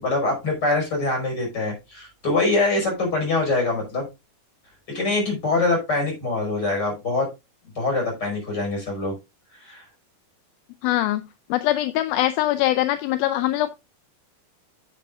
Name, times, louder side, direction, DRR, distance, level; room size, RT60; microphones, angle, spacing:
voice 1, 0.0-4.1 4.9-7.3 7.8-9.1 9.6-9.8, left 2 dB, 25° left, 1 dB, 5.6 m, -24 dB
voice 2, 10.8-11.2 11.5-13.8, left 14 dB, 80° left, 11 dB, 2.4 m, -22 dB
9.1 x 8.9 x 2.4 m, 0.23 s
omnidirectional pair, 4.3 m